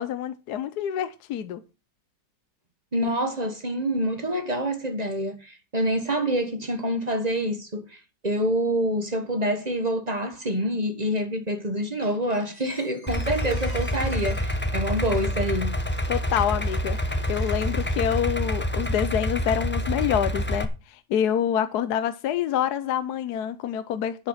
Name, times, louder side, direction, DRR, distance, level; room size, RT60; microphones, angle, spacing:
voice 1, 0.0-1.6 16.1-24.3, left 9 dB, 70° left, 1.2 m, -27 dB
voice 2, 2.9-15.8, equal, 25° right, 1.4 m, -27 dB
Squeak, 12.0-18.9, left 1 dB, 25° left, 3.4 m, -48 dB
Idling, 13.1-20.6, equal, 10° left, 0.6 m, -27 dB
10.5 x 7.4 x 5.6 m
omnidirectional pair, 1.9 m